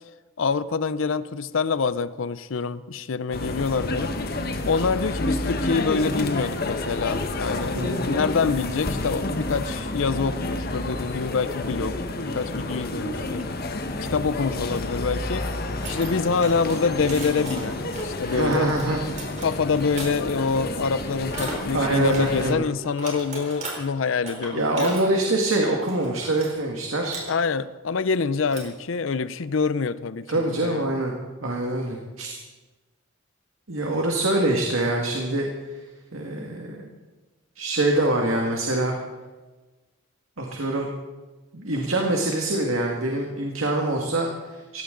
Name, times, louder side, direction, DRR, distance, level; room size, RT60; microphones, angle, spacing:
voice 1, 0.4-4.1 4.7-7.8 8.0-13.4 14.1-15.5 15.9-18.8 19.4-25.0 27.3-30.9, left 5 dB, 75° left, 15 dB, 0.6 m, -26 dB
sound 1, 3.3-22.5, left 2 dB, 50° left, 1.3 m, -30 dB
voice 2, 7.7-8.1 18.3-19.0 21.7-22.6 24.5-27.2 30.3-31.1 31.4-32.4 33.7-35.8 36.1-36.9 37.6-39.0 40.4-40.9 41.5-44.8, right 1 dB, 85° right, 1 dB, 1.9 m, -24 dB
sound 2, 15.8-20.1 21.3-21.6 22.1-22.3 22.8-23.7 24.2-26.5 26.8-27.3 28.2-28.8, right 2 dB, 35° right, 4.2 m, -37 dB
18.5 x 16.0 x 3.9 m, 1.2 s
head